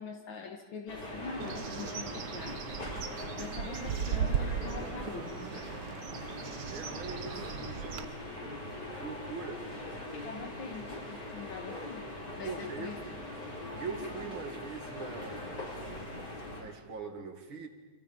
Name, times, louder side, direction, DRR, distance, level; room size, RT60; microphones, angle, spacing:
voice 1, 0.0-5.4 10.3-12.1 12.4-13.0, left 5 dB, 80° left, 3 dB, 2.4 m, -44 dB
sound 1, 0.9-16.6, left 1 dB, 55° left, 6.5 m, -42 dB
Bird, 1.4-8.0, right 8 dB, 65° right, 1.5 m, -37 dB
voice 2, 6.7-7.5 8.9-9.7 12.4-13.1 13.8-15.8 16.5-17.7, right 5 dB, 85° right, 5 dB, 3.1 m, -42 dB
29.5 x 26.5 x 5.4 m, 1.3 s
omnidirectional pair, 2.1 m